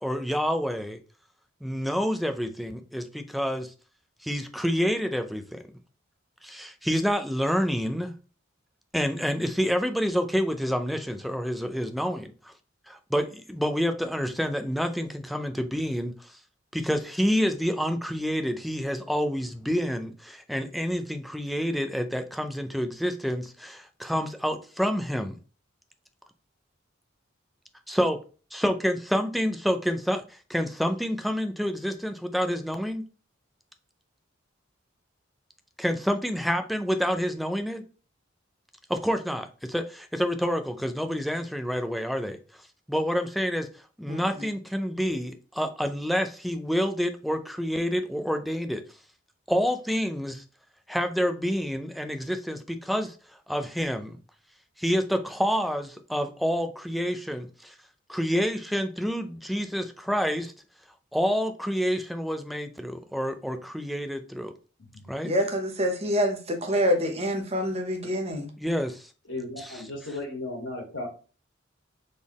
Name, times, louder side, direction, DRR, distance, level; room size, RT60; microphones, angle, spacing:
voice 1, 0.0-1.0 1.6-3.7 4.2-5.6 6.4-8.1 8.9-12.5 12.9-16.3 16.7-25.4 27.9-28.2 28.5-33.0 35.8-37.8 38.9-42.4 42.9-43.7 44.0-48.8 49.5-50.4 50.9-53.1 53.5-54.2 54.8-57.7 58.1-60.5 61.1-64.5 65.1-65.3 68.6-69.1 69.6-69.7, equal, ahead, 0.5 m, -28 dB
voice 2, 44.1-44.5 65.2-68.5, equal, 30° right, 0.9 m, -26 dB
voice 3, 69.3-71.1, left 2 dB, 80° left, 1.8 m, -36 dB
4.2 x 3.6 x 3.0 m
head